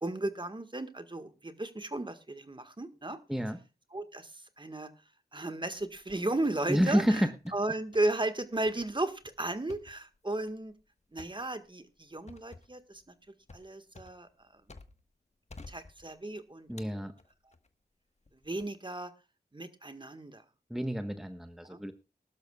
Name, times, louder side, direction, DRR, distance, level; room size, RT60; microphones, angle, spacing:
voice 1, 0.0-3.2 3.9-4.9 5.3-10.7 11.1-13.0 13.5-14.6 15.7-17.1 18.4-19.1 19.5-20.4 21.6-21.8, right 2 dB, 25° right, 10 dB, 1.7 m, -35 dB
sound 1, 5.8-6.7 7.0-7.7 7.9-8.1 8.7-15.1 15.5-16.3 16.8-17.7 18.3-18.7, left 3 dB, 40° left, 1.4 m, -53 dB
voice 2, 6.7-7.3 16.7-17.1 20.7-21.9, equal, ahead, 8 dB, 1.2 m, -29 dB
20.5 x 12.0 x 2.4 m, 0.29 s
cardioid pair, 40°, 18 cm